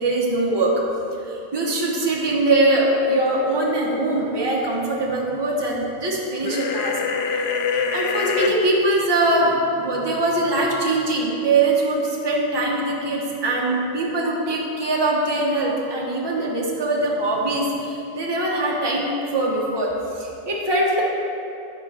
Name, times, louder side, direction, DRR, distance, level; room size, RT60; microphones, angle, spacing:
voice 1, 0.0-0.7 1.2-7.0 7.3-7.4 7.9-21.0, right 2 dB, 20° right, -3 dB, 1.0 m, -22 dB
sound 1, 6.4-8.5, left 5 dB, 65° left, 0.7 m, -24 dB
9.7 x 3.7 x 5.7 m, 2.8 s
omnidirectional pair, 1.4 m